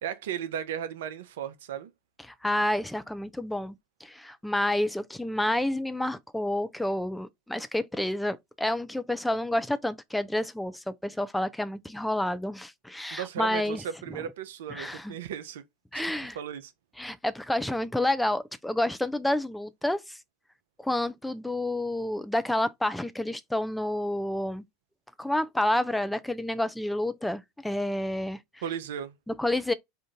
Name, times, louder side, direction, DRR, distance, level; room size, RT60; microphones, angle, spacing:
voice 1, 0.0-1.9 13.1-15.6 15.9-16.0 16.4-16.7 28.6-29.2, right 9 dB, 70° right, 0.5 m, -35 dB
voice 2, 2.3-3.7 4.0-13.8 14.1-14.2 14.7-15.1 15.9-16.4 17.0-20.2 20.8-24.6 25.2-28.4 29.3-29.7, left 1 dB, 5° left, 0.4 m, -29 dB
3.7 x 2.5 x 3.4 m
hypercardioid pair, 85°, 0 cm